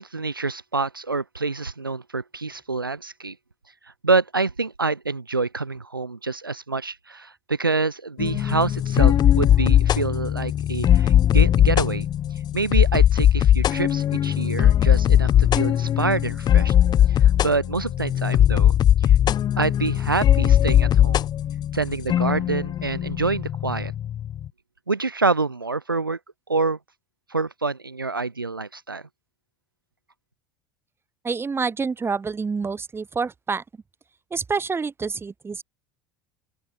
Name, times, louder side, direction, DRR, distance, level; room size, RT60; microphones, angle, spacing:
voice 1, 0.0-3.4 3.8-12.1 12.5-16.7 17.1-19.2 19.6-21.3 21.7-23.9 24.9-26.2 26.5-26.8 27.3-29.0, right 3 dB, 85° right, 1.9 m, -26 dB
sound 1, 8.2-24.5, left 10 dB, 40° left, 2.7 m, -19 dB
voice 2, 31.2-33.6 34.3-35.6, right 5 dB, 20° right, 6.3 m, -27 dB
open air
figure-of-eight pair, 70°, 11 cm